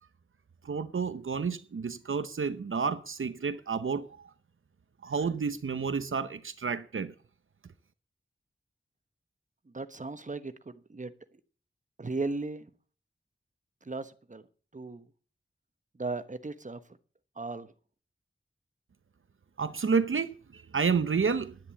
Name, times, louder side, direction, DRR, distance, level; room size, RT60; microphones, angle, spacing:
voice 1, 0.6-4.3 5.0-7.1 19.6-21.6, right 5 dB, 75° right, 0.8 m, -30 dB
voice 2, 9.6-11.4 12.0-12.7 13.8-14.5 14.7-15.1 16.0-16.8 17.4-17.7, right 3 dB, 35° right, 1.2 m, -37 dB
10.5 x 10.0 x 7.5 m
wide cardioid pair, 75°, 21 cm